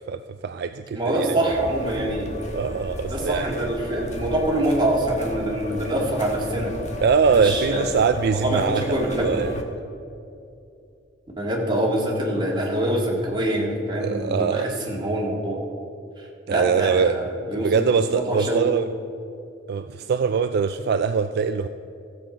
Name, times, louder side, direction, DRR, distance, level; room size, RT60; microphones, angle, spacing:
voice 1, 0.0-1.5 2.5-3.7 7.0-9.5 14.0-14.7 16.5-17.2 17.5-18.9 19.7-21.7, right 5 dB, 55° right, 9 dB, 0.3 m, -23 dB
voice 2, 1.0-2.4 3.1-6.8 7.3-8.0 8.3-9.5 11.4-15.6 16.2-18.6, right 1 dB, 25° right, -2 dB, 2.1 m, -25 dB
sound 1, 1.5-9.6, left 2 dB, 40° left, 1.3 m, -34 dB
15.0 x 7.5 x 5.1 m, 2.7 s
head